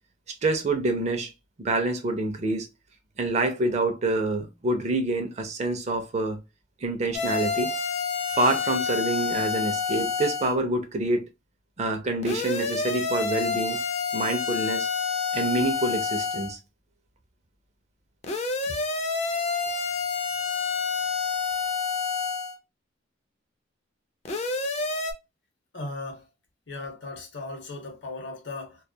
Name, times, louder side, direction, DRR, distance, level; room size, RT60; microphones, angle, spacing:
voice 1, 0.4-1.3 1.6-2.7 3.2-6.4 6.8-7.7 8.3-11.3 11.8-13.8 14.1-14.9 15.3-16.6, right 2 dB, 35° right, 0.4 m, -26 dB
sound 1, 7.1-10.5 12.2-16.5 18.2-22.6 24.3-25.1, left 5 dB, 35° left, 0.4 m, -28 dB
voice 2, 25.7-26.2 26.7-28.8, left 2 dB, 65° left, 0.8 m, -37 dB
2.2 x 2.1 x 2.6 m
head